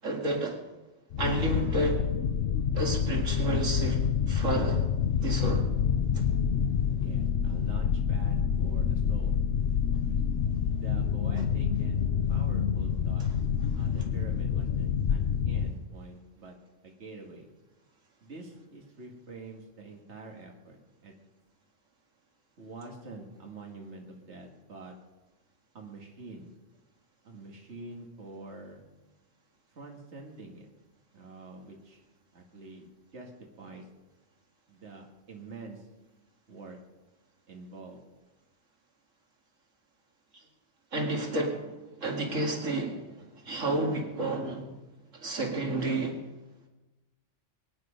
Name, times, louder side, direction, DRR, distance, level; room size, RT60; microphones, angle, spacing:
voice 1, 0.0-0.6 1.2-2.0 2.7-4.9 5.2-5.7 6.1-6.2 40.9-44.7 45.1-46.2, right 2 dB, 85° right, 1 dB, 2.5 m, -31 dB
sound 1, 1.1-15.7, left 7 dB, 60° left, 0.9 m, -27 dB
voice 2, 7.0-9.4 10.7-13.3 13.7-16.6 16.8-17.5 18.2-21.1 22.6-25.0 25.7-26.5 27.2-28.8 29.7-30.7 31.1-32.0 32.3-32.9 33.1-33.9 34.7-35.9 36.5-36.8 37.5-38.0, right 3 dB, 60° right, 0 dB, 2.3 m, -46 dB
23.0 x 9.7 x 5.2 m, 1.1 s
omnidirectional pair, 1.3 m